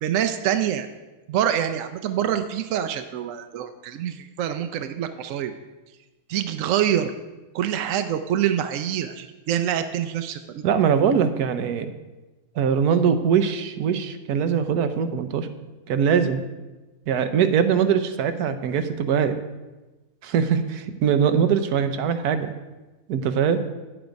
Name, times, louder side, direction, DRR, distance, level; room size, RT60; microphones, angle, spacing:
voice 1, 0.0-0.9 1.3-5.5 6.3-7.1 7.5-10.6, right 10 dB, 70° right, 9 dB, 0.9 m, -25 dB
voice 2, 10.6-11.9 12.6-15.5 15.9-16.4 17.1-19.4 20.2-22.5 23.1-23.6, right 7 dB, 90° right, 9 dB, 1.3 m, -22 dB
9.4 x 7.8 x 5.2 m, 1.2 s
omnidirectional pair, 1.6 m